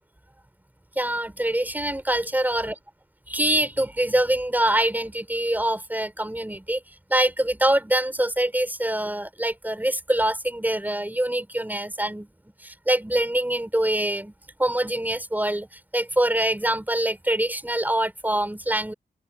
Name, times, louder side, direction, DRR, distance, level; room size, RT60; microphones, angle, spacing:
voice 1, 1.0-2.7 3.3-6.8 7.1-12.3 12.6-14.3 14.6-15.7 15.9-18.9, right 1 dB, 10° right, 5.5 m, -24 dB
open air
wide cardioid pair, 85°, 17 cm